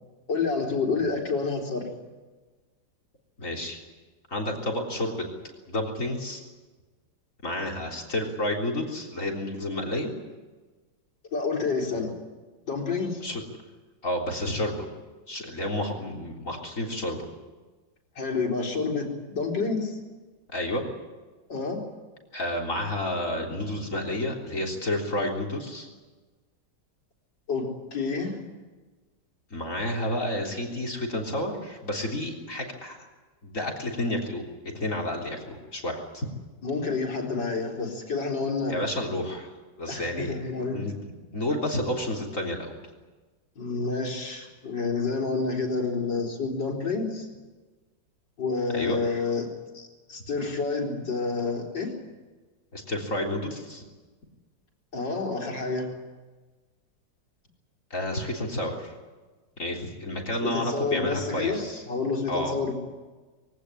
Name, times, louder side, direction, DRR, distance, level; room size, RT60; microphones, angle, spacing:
voice 1, 0.3-1.9 11.3-12.1 12.7-13.2 18.2-20.0 21.5-21.8 27.5-28.4 36.6-38.8 39.9-40.9 43.6-47.3 48.4-51.9 54.9-56.0 60.4-62.7, left 4 dB, 80° left, 1 dB, 4.8 m, -29 dB
voice 2, 3.4-3.8 4.3-5.3 5.7-6.4 7.4-10.1 11.9-12.1 13.2-13.4 14.0-14.9 15.3-17.3 20.5-20.8 22.3-25.9 29.5-33.0 33.4-34.4 34.7-36.3 38.7-39.5 39.8-40.3 40.7-41.0 41.3-42.7 48.7-49.0 52.7-53.8 57.9-58.9 59.6-61.8 62.3-62.6, left 1 dB, 45° left, 4 dB, 3.9 m, -30 dB
23.0 x 17.5 x 9.9 m, 1.3 s
omnidirectional pair, 1.9 m